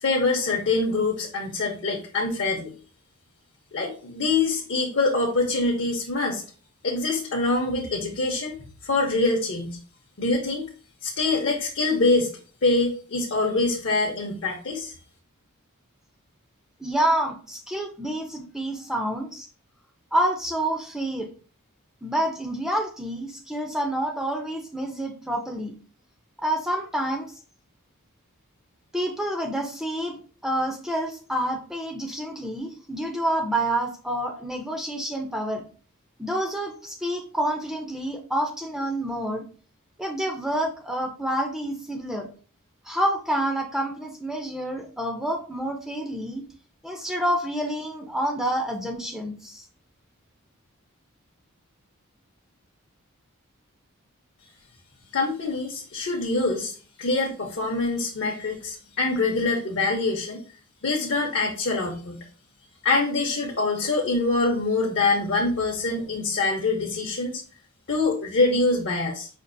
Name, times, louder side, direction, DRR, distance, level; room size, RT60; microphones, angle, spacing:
voice 1, 0.0-2.7 3.7-6.4 6.8-8.6 8.8-9.8 10.2-10.7 11.0-12.3 12.6-14.9 55.1-60.4 60.8-62.2 62.8-67.4 67.9-69.3, left 3 dB, 55° left, 0 dB, 0.7 m, -24 dB
voice 2, 16.8-19.5 20.1-21.3 22.0-25.7 26.4-27.3 28.9-30.2 30.4-35.6 36.2-39.4 40.0-42.3 42.8-46.4 46.8-49.7, right 1 dB, ahead, 2 dB, 0.4 m, -28 dB
5.1 x 2.4 x 2.5 m, 0.39 s
head